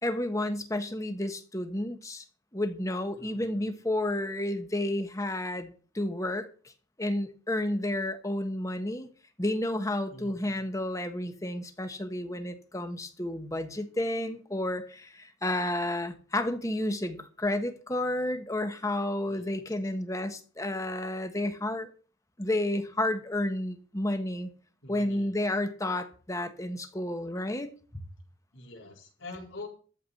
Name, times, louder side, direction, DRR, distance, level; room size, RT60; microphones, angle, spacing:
voice 1, 0.0-2.2 2.5-6.5 7.0-9.1 9.4-21.9 22.4-24.5 24.9-27.7, left 1 dB, 15° left, 1.3 m, -31 dB
voice 2, 3.1-3.7 10.1-10.6 19.3-19.6 24.8-25.3 28.5-29.7, left 2 dB, 85° left, 4.6 m, -45 dB
14.0 x 4.8 x 8.3 m
head